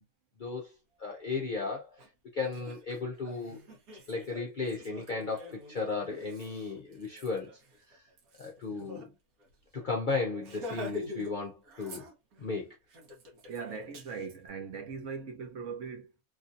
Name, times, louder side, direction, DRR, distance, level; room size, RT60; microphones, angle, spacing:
voice 1, 0.4-0.7 1.0-2.0 2.3-3.6 4.1-7.5 7.9-8.0 8.4-9.1 9.7-12.0 12.4-12.7, left 4 dB, 55° left, 0.5 m, -35 dB
Laughter, 2.0-2.1 2.4-9.1 9.4-9.5 9.8-10.0 10.4-11.4 11.6-12.5 12.9-14.4, left 2 dB, 80° right, 1.4 m, -45 dB
voice 2, 13.5-16.2, right 5 dB, 60° right, 1.0 m, -40 dB
3.1 x 2.6 x 2.5 m
omnidirectional pair, 1.5 m